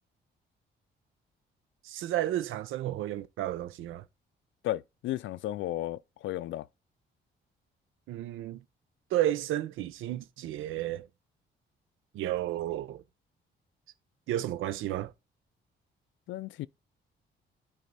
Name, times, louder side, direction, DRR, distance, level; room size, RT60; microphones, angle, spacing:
voice 1, 1.8-4.0 8.1-8.6 9.1-11.1 12.1-13.0 14.3-15.1, right 13 dB, 85° right, 0.7 m, -32 dB
voice 2, 4.6-6.7 16.3-16.7, left 14 dB, 75° left, 0.4 m, -34 dB
9.2 x 4.1 x 4.1 m
cardioid pair, 90°, 20 cm